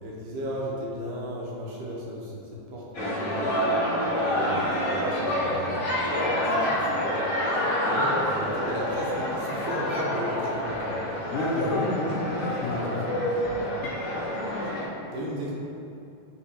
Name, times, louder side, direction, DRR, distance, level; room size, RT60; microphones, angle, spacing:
voice 1, 0.0-3.6 4.2-7.2 7.8-11.0 12.3-12.4 12.7-13.0 13.5-13.8 15.1-15.5, equal, 75° right, -4 dB, 2.4 m, -35 dB
sound 1, 2.9-14.8, equal, 50° left, 1.8 m, -27 dB
voice 2, 8.0-8.4 11.3-13.2, left 2 dB, 80° left, -3 dB, 2.4 m, -30 dB
9.9 x 3.9 x 2.9 m, 2.7 s
omnidirectional pair, 3.9 m